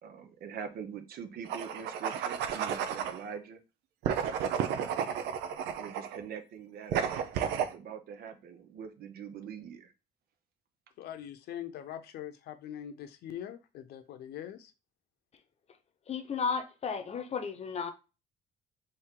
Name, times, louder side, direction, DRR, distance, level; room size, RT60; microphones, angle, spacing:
voice 1, 0.0-3.6 4.4-4.9 5.8-9.9, right 7 dB, 65° right, 8 dB, 0.9 m, -44 dB
sound 1, 1.5-3.2 4.0-6.2 6.9-7.7, right 8 dB, 85° right, 0.6 m, -32 dB
voice 2, 11.0-14.7, left 10 dB, 70° left, 10 dB, 0.8 m, -42 dB
voice 3, 16.1-17.9, left 5 dB, 40° left, 8 dB, 0.8 m, -33 dB
4.4 x 2.8 x 3.7 m, 0.29 s
cardioid pair, 110°, 17 cm